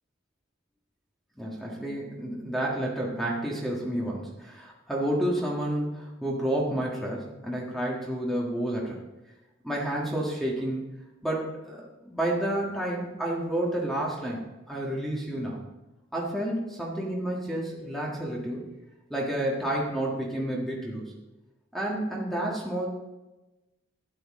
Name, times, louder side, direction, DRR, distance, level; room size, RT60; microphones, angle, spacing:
voice 1, 1.4-9.0 9.6-10.8 11.2-14.4 14.7-15.6 16.1-18.7 19.1-21.1 21.7-22.9, right 1 dB, ahead, -3 dB, 1.6 m, -30 dB
12.5 x 9.8 x 3.7 m, 1.0 s
head